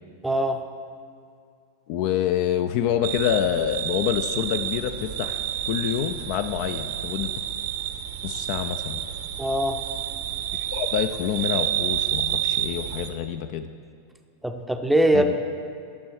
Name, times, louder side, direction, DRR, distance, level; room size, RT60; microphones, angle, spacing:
voice 1, 0.2-0.6 9.4-9.8 14.4-15.5, right 1 dB, 5° right, 5 dB, 0.6 m, -22 dB
voice 2, 1.9-7.3 8.2-9.0 10.6-13.7 15.1-15.4, left 10 dB, 45° left, 10 dB, 0.3 m, -27 dB
sound 1, 3.0-13.1, right 11 dB, 55° right, 0.7 m, -29 dB
10.5 x 6.1 x 4.6 m, 2.4 s
figure-of-eight pair, 90°, 0 cm